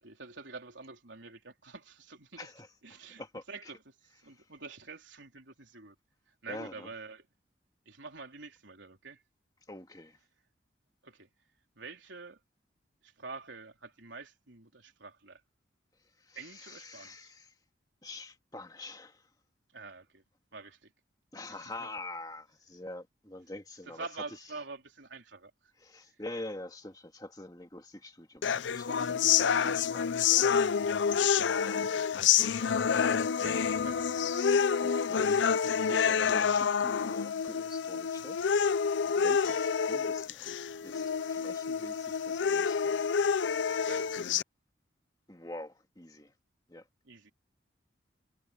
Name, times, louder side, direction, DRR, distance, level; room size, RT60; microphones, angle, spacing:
voice 1, 0.0-2.4 2.8-3.2 3.5-5.9 6.4-7.3 7.9-9.2 11.0-11.3 11.8-12.4 13.0-15.4 16.3-17.3 19.7-20.2 20.5-20.9 21.5-21.9 23.9-25.7 31.6-31.9 32.7-34.7 39.1-39.2 43.8-44.2 47.0-47.3, right 4 dB, 80° right, 3.8 m, -47 dB
voice 2, 2.4-3.7 4.2-4.5 6.5-6.9 9.7-10.2 16.2-17.5 18.0-19.3 21.3-24.1 25.8-32.1 34.8-35.4 35.8-43.1 45.3-46.3 46.7-46.9, left 2 dB, 20° left, 2.1 m, -46 dB
sound 1, 28.4-44.4, left 7 dB, 80° left, 0.5 m, -28 dB
head